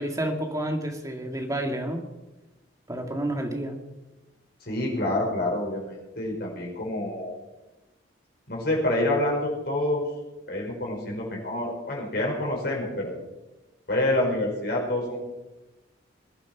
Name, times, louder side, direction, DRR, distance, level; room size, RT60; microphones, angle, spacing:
voice 1, 0.0-2.0 2.9-3.8, right 1 dB, 20° right, 4 dB, 1.9 m, -30 dB
voice 2, 4.6-7.3 8.5-10.0 10.5-13.1 13.9-15.2, left 1 dB, 55° left, -1 dB, 5.3 m, -27 dB
21.5 x 11.0 x 6.1 m, 1.1 s
head